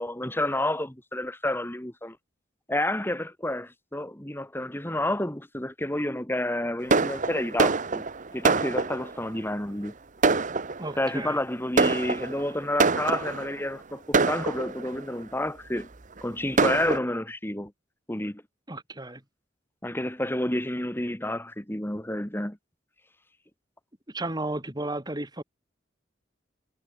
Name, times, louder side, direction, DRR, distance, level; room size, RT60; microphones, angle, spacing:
voice 1, 0.0-2.2 2.7-8.0 8.3-9.9 11.0-15.9 16.2-17.7 18.1-18.4 19.8-22.6, left 1 dB, 10° left, 2.2 m, -30 dB
Fireworks, 6.9-9.2 9.9-10.0 10.2-11.1 11.8-13.5 14.1-15.0 15.8-15.9 16.2-16.3 16.6-17.0, right 4 dB, 45° right, 1.1 m, -25 dB
voice 2, 10.8-11.4 18.7-19.2 24.1-25.4, right 2 dB, 20° right, 3.1 m, -33 dB
head